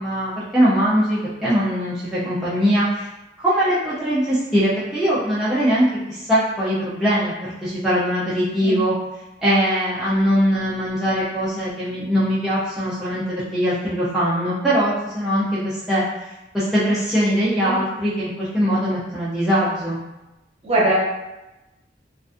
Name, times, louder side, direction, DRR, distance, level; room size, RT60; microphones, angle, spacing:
voice 1, 0.0-3.1 3.4-8.9 9.4-16.0 16.5-20.0, equal, 5° right, -11 dB, 0.4 m, -21 dB
voice 2, 20.6-20.9, right 2 dB, 35° right, -7 dB, 0.8 m, -20 dB
2.4 x 2.3 x 2.4 m, 1.0 s
head